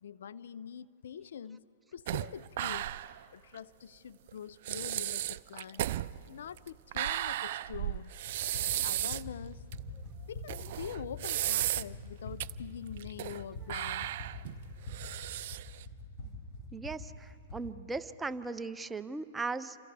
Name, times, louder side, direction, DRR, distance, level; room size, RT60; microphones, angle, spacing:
voice 1, 0.0-1.6 1.9-2.9 3.3-5.8 6.3-8.1 8.8-9.6 10.3-14.1, left 8 dB, 75° left, 17 dB, 0.5 m, -44 dB
sound 1, 2.1-3.2 3.5-3.6 4.3-4.4 4.7-9.3 9.7-9.8 10.5-12.0 12.4-12.5 13.0-13.4 13.7-15.8, right 13 dB, 60° right, 0.5 m, -34 dB
Run, 8.3-17.7, left 1 dB, 25° left, 6.6 m, -44 dB
voice 2, 16.7-19.8, right 3 dB, 10° right, 11 dB, 0.6 m, -38 dB
29.5 x 26.5 x 3.4 m, 2.5 s
hypercardioid pair, 125°, 0 cm